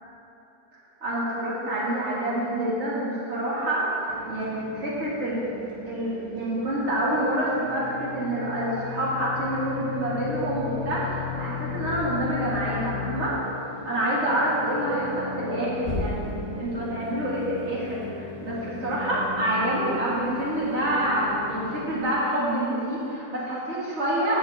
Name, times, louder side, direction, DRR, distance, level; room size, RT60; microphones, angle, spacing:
voice 1, 1.0-5.5 5.8-13.3 13.8-16.2 16.6-24.4, right 1 dB, 45° right, -8 dB, 2.7 m, -27 dB
sound 1, 4.1-22.0, equal, 5° left, 2.5 m, -39 dB
sound 2, 7.5-13.3 15.8-16.6, left 8 dB, 55° left, 2.8 m, -34 dB
17.5 x 6.7 x 3.7 m, 2.8 s
omnidirectional pair, 1.6 m